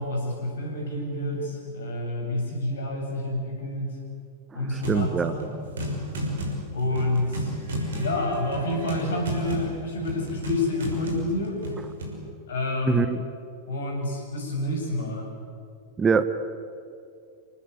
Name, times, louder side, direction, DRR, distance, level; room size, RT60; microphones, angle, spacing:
voice 1, 0.0-4.0 4.5-5.5 6.7-7.6 8.0-11.6 12.5-13.0 13.7-15.3, left 1 dB, 65° left, 1 dB, 8.0 m, -28 dB
voice 2, 4.5-5.3 12.9-13.2 16.0-16.2, right 6 dB, 20° right, 12 dB, 1.1 m, -23 dB
sound 1, 4.8-5.1 5.4-12.2, equal, 65° right, 6.0 m, -32 dB
27.5 x 19.0 x 8.6 m, 2.4 s
figure-of-eight pair, 90°, 0 cm